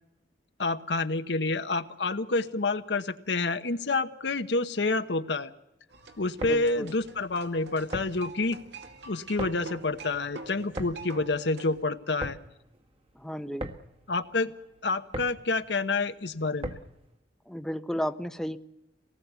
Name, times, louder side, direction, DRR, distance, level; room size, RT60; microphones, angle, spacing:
voice 1, 0.6-5.5 6.2-8.6 9.1-12.4 14.1-14.5 14.8-16.7, left 3 dB, 75° left, 9 dB, 1.0 m, -28 dB
sound 1, 5.9-11.8, right 3 dB, 75° right, 2.3 m, -46 dB
sound 2, 6.2-17.1, right 1 dB, 35° right, 1.5 m, -42 dB
voice 2, 6.4-6.9 13.1-13.7 17.5-18.6, equal, 5° left, 10 dB, 0.7 m, -33 dB
24.5 x 18.5 x 8.2 m, 0.94 s
head